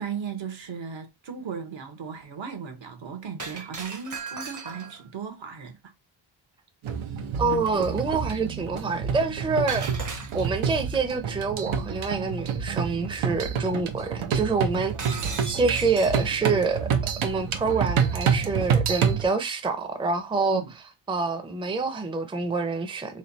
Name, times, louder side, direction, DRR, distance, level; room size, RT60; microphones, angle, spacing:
voice 1, 0.0-5.8 20.5-20.7, right 6 dB, 70° right, 1.2 m, -36 dB
Shatter, 3.4-5.1 9.7-10.7 15.0-16.2, right 4 dB, 40° right, 0.8 m, -37 dB
sound 1, 6.8-19.2, right 7 dB, 85° right, 0.8 m, -28 dB
voice 2, 7.4-9.9 10.3-15.2 15.5-16.9 17.2-20.6 21.1-23.2, right 4 dB, 10° right, 0.5 m, -26 dB
3.3 x 2.3 x 4.0 m
cardioid pair, 80°, 47 cm